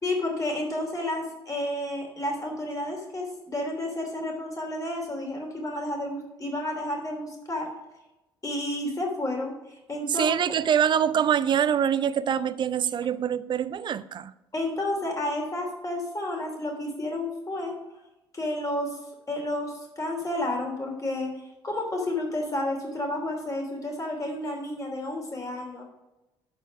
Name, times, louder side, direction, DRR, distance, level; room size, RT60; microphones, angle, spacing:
voice 1, 0.0-7.7 8.4-10.3 10.6-10.7 14.5-17.8 18.3-19.0 19.3-25.8, left 1 dB, 25° left, 3.1 m, -31 dB
voice 2, 10.1-14.3, right 8 dB, 35° right, 0.5 m, -24 dB
12.0 x 4.5 x 5.2 m
figure-of-eight pair, 45°, 13 cm